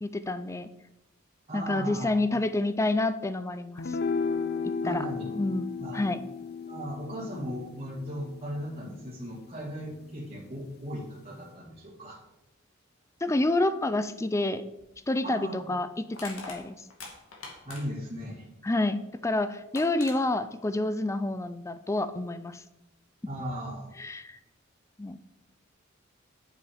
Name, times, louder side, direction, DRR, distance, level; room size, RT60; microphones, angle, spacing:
voice 1, 0.0-0.7 1.5-4.0 4.8-5.1 5.3-6.2 13.2-14.6 15.1-16.8 18.6-22.6 24.0-24.4 25.0-25.2, left 2 dB, 15° left, 12 dB, 0.4 m, -28 dB
voice 2, 1.5-2.1 4.8-5.3 5.8-6.0 6.7-12.2 15.2-15.7 17.6-18.5 23.3-23.9, equal, 30° right, -6 dB, 2.1 m, -37 dB
sound 1, 3.8-10.3, left 5 dB, 50° left, 0.6 m, -35 dB
Crushing, 14.8-14.9 16.1-18.1 19.3-19.4 19.7-20.2, left 3 dB, 85° left, 2.3 m, -43 dB
8.7 x 7.0 x 5.0 m, 0.91 s
head